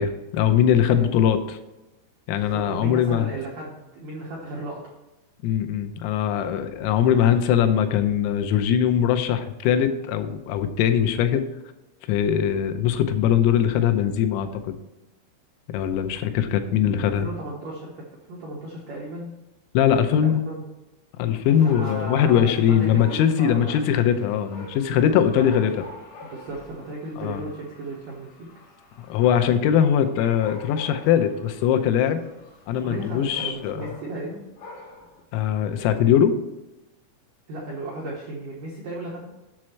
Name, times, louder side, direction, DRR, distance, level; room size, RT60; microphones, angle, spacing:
voice 1, 0.0-1.6 2.3-3.3 5.4-11.5 12.1-14.8 15.7-17.3 19.8-20.4 21.2-25.9 27.2-27.4 29.0-32.2 32.7-33.8 35.3-36.4, left 9 dB, 90° left, 7 dB, 3.5 m, -21 dB
voice 2, 0.9-1.4 2.3-4.9 17.2-17.9 18.3-19.3 20.2-20.6 21.6-23.8 25.4-25.7 26.2-28.5 32.8-34.4 37.5-39.3, right 2 dB, 75° right, -4 dB, 2.0 m, -35 dB
Dog, 21.5-35.2, left 2 dB, 60° left, 3.8 m, -45 dB
8.6 x 6.4 x 4.5 m, 0.98 s
omnidirectional pair, 6.0 m